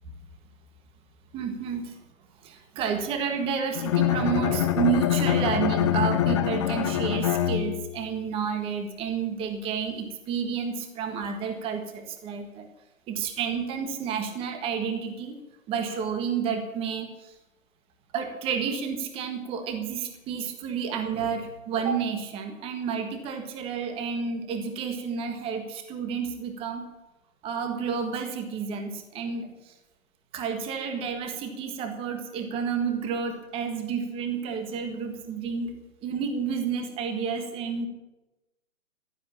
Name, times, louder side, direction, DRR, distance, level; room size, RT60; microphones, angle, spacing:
voice 1, 1.3-2.0 2.4-12.7 13.1-15.3 15.7-17.3 18.1-26.8 27.4-29.7 30.3-35.7 36.0-37.9, right 6 dB, 15° right, 6 dB, 1.6 m, -30 dB
Bowed string instrument, 3.7-8.1, left 10 dB, 20° left, 0.8 m, -25 dB
16.0 x 11.0 x 7.4 m, 0.98 s
hypercardioid pair, 145°, 41 cm